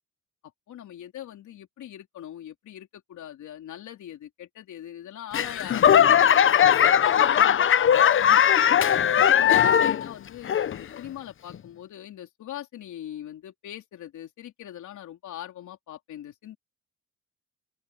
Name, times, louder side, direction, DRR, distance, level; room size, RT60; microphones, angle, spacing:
voice 1, 0.7-8.4 9.4-16.6, left 11 dB, 75° left, 3.6 m, -41 dB
Laughter / Clapping / Crowd, 5.3-10.1 10.4-11.0 11.5-11.6, left 9 dB, 45° left, 0.7 m, -19 dB
open air
cardioid pair, 90°, 30 cm